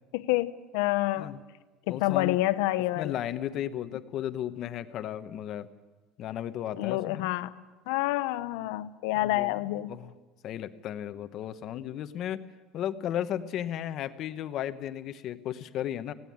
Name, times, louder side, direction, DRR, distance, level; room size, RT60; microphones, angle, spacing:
voice 1, 0.1-1.4 1.9-3.1 6.8-7.5 7.9-9.9, left 17 dB, 80° left, 14 dB, 0.9 m, -28 dB
voice 2, 1.9-2.4 3.0-5.7 6.2-7.3 9.2-10.1 10.4-12.4 12.7-16.1, left 11 dB, 45° left, 11 dB, 1.0 m, -34 dB
19.0 x 17.5 x 8.7 m, 1.2 s
cardioid pair, 160°, 0 cm